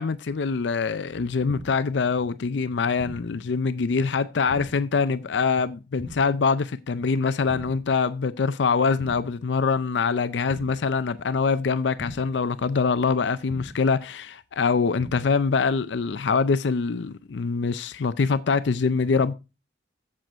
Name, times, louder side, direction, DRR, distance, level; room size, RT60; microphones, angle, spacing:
voice 1, 0.0-19.3, left 5 dB, 75° left, 0.5 m, -24 dB
sound 1, 1.5-2.0 3.0-3.5 4.5-5.0 6.0-6.5 7.5-8.0 9.0-9.5 10.5-11.0 12.0-12.5 13.5-14.0 15.0-15.5, equal, 45° right, 2.4 m, -41 dB
7.7 x 7.5 x 4.4 m
head